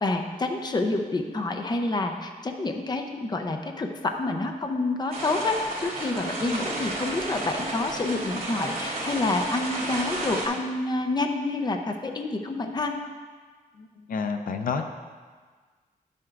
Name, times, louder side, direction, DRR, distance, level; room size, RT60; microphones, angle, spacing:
voice 1, 0.0-13.0, left 2 dB, 30° left, 4 dB, 0.7 m, -28 dB
sound 1, 5.1-10.5, right 2 dB, 70° right, 2.4 m, -32 dB
voice 2, 13.7-14.8, left 5 dB, 70° left, 6 dB, 0.5 m, -30 dB
10.0 x 7.8 x 2.5 m, 1.5 s
wide cardioid pair, 110°, 15 cm